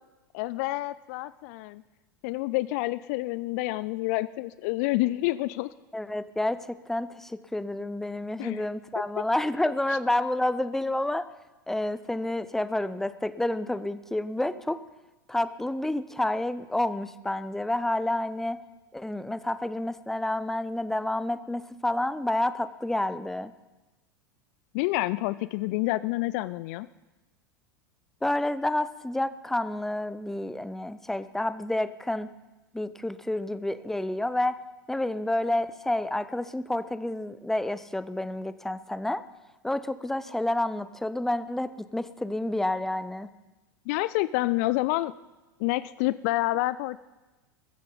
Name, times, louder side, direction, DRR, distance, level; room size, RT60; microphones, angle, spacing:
voice 1, 0.3-1.8 2.2-5.7 8.4-8.7 9.2-9.3 24.7-26.9 43.9-45.1 45.6-47.0, left 19 dB, 50° left, 17 dB, 0.4 m, -28 dB
voice 2, 5.9-11.3 11.7-14.8 15.3-18.6 18.9-23.5 28.2-32.3 32.7-34.6 34.9-39.2 39.6-43.3, left 1 dB, 5° left, 14 dB, 0.7 m, -29 dB
21.0 x 14.5 x 4.0 m, 1.1 s
figure-of-eight pair, 85°, 11 cm